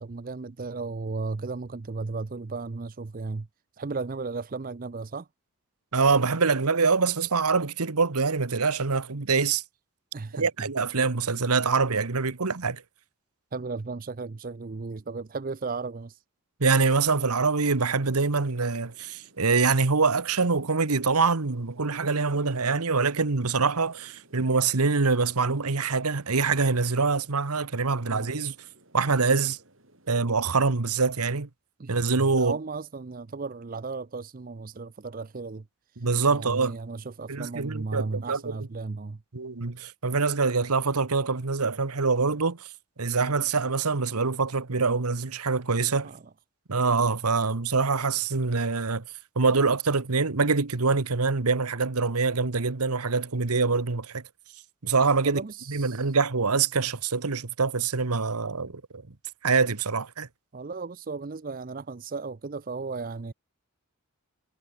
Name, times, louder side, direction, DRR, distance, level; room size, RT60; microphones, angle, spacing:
voice 1, 0.0-3.5 3.8-5.3 10.1-10.7 13.5-16.1 28.1-28.3 31.8-35.6 36.3-39.2 46.0-46.2 55.2-56.0 60.5-63.3, right 4 dB, 40° right, 0.5 m, -35 dB
voice 2, 5.9-9.6 10.3-12.8 16.6-28.5 28.9-29.6 30.1-31.5 31.9-32.6 36.0-36.7 37.3-38.4 39.3-42.7 43.0-46.1 46.7-49.0 49.4-54.2 54.8-55.4 55.7-59.0 59.4-60.3, right 4 dB, 90° right, 1.2 m, -25 dB
sound 1, 17.6-30.1, right 1 dB, 60° right, 7.8 m, -59 dB
head